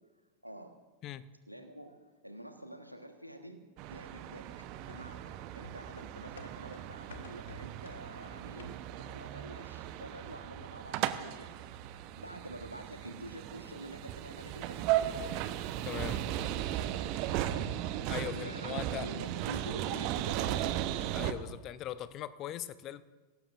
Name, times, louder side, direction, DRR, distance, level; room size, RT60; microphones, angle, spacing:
voice 1, 0.4-0.8 1.5-4.6 4.8-8.8 9.1-11.6 11.9-15.3 17.3-20.8, right 1 dB, 90° right, 1.3 m, -48 dB
sound 1, 3.8-21.3, right 12 dB, 45° right, 0.9 m, -36 dB
sound 2, 4.9-9.4 9.7-9.8, left 6 dB, 60° left, 1.6 m, -54 dB
voice 2, 15.8-16.2 18.1-19.1 21.1-23.0, left 12 dB, 35° left, 0.7 m, -40 dB
22.5 x 18.0 x 2.5 m
figure-of-eight pair, 90°, 0 cm